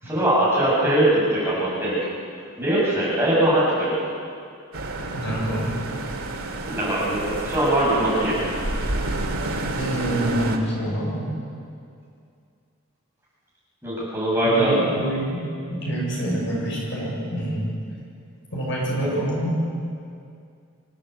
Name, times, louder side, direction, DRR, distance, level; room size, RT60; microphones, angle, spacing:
voice 1, 0.0-2.1 2.6-4.0 6.6-8.4 13.8-14.9 19.0-19.1, right 1 dB, 10° right, -8 dB, 7.7 m, -21 dB
sound 1, 4.7-10.6, right 2 dB, 80° right, 2.7 m, -29 dB
voice 2, 5.1-5.8 9.8-11.3 14.4-15.4 15.7-17.7 18.5-19.5, right 1 dB, 55° left, -4 dB, 7.2 m, -26 dB
25.5 x 17.0 x 8.2 m, 2.4 s
head